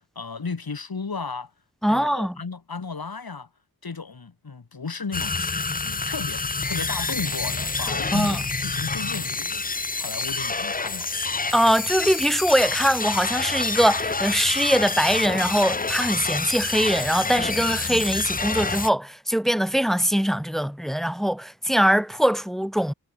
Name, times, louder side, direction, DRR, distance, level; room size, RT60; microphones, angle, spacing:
voice 1, 0.2-1.5 1.8-3.5 3.8-5.5 5.8-9.6 10.0-11.1, left 4 dB, 65° left, 2.5 m, -34 dB
voice 2, 1.8-2.4 8.1-8.4 11.5-22.9, equal, ahead, 1.1 m, -22 dB
sound 1, 5.1-18.9, left 3 dB, 20° left, 0.6 m, -28 dB
wide cardioid pair, 65°, 39 cm